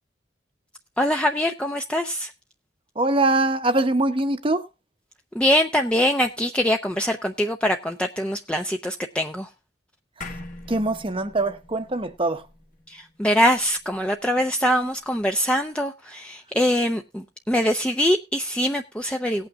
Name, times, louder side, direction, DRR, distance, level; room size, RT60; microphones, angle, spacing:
voice 1, 1.0-2.3 5.3-9.5 12.9-19.5, equal, 5° left, 0.6 m, -23 dB
voice 2, 2.9-4.7 10.2-10.4 10.7-12.5, right 2 dB, 30° right, 0.9 m, -23 dB
sound 1, 10.2-14.8, left 2 dB, 45° left, 1.4 m, -43 dB
18.5 x 8.8 x 2.4 m
head